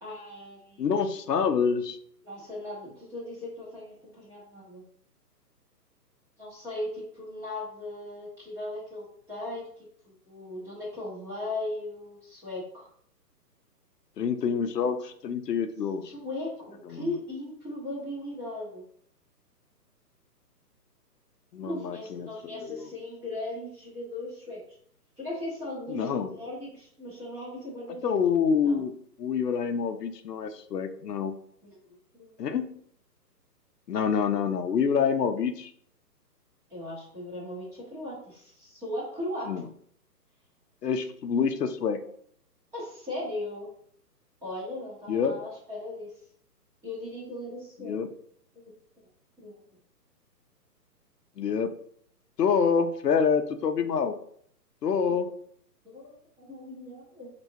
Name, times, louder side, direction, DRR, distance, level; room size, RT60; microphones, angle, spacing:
voice 1, 0.0-0.8 2.2-4.8 6.4-9.7 10.0-12.9 16.0-18.8 21.6-24.6 25.2-28.1 28.6-28.8 31.6-31.7 32.1-32.3 36.7-39.5 42.7-43.7 44.4-46.1 46.8-47.9 49.4-49.5 55.1-55.2 55.8-56.2 56.5-57.3, left 1 dB, 5° right, -8 dB, 0.8 m, -37 dB
voice 2, 0.8-2.0 14.2-16.1 16.9-17.0 21.5-22.3 22.6-22.9 25.9-26.3 28.0-28.9 29.2-31.3 32.4-32.7 33.9-35.7 39.5-39.7 40.8-42.0 45.1-45.4 47.8-48.1 51.4-51.7 52.4-54.1 54.8-55.3, left 6 dB, 70° left, 8 dB, 0.6 m, -26 dB
4.4 x 3.0 x 2.7 m, 0.62 s
hypercardioid pair, 140°, 50 cm